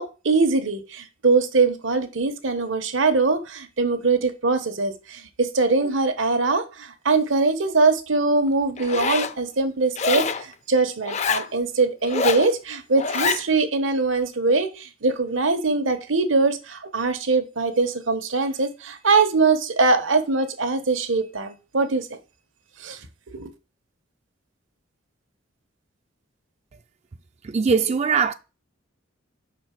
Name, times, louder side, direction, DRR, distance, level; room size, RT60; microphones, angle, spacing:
voice 1, 0.0-22.2 22.8-23.0 23.3-23.5, right 3 dB, 80° right, 1.1 m, -22 dB
Zipper (clothing), 8.8-9.3 10.0-10.4 11.0-11.5 12.0-12.5 13.0-13.4, left 5 dB, 35° left, 0.5 m, -25 dB
voice 2, 27.4-28.3, right 5 dB, 35° right, 0.4 m, -21 dB
5.6 x 4.4 x 5.9 m
head